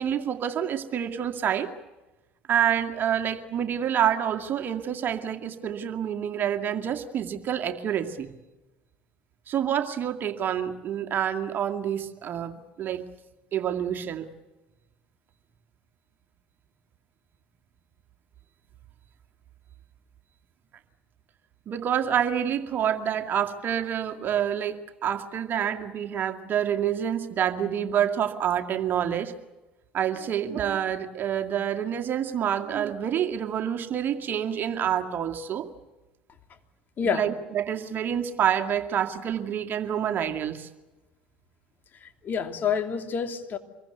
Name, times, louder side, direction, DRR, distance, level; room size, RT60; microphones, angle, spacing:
voice 1, 0.0-1.7 2.5-8.3 9.5-13.1 13.5-14.3 21.7-29.3 29.9-35.7 37.0-40.7, right 9 dB, 45° right, 6 dB, 2.2 m, -27 dB
voice 2, 37.0-37.3 42.0-43.6, left 6 dB, 40° left, 7 dB, 3.0 m, -28 dB
26.0 x 22.5 x 8.1 m, 1.1 s
hypercardioid pair, 70°, 5 cm